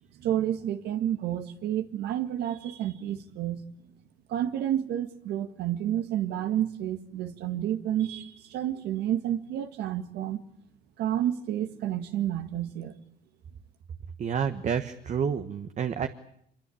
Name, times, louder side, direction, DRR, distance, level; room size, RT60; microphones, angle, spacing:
voice 1, 0.2-3.6 4.3-10.4 11.0-13.0, right 11 dB, 80° right, 1.9 m, -30 dB
voice 2, 14.2-16.1, right 7 dB, 45° right, 1.3 m, -29 dB
25.0 x 22.5 x 8.7 m
cardioid pair, 110°, 17 cm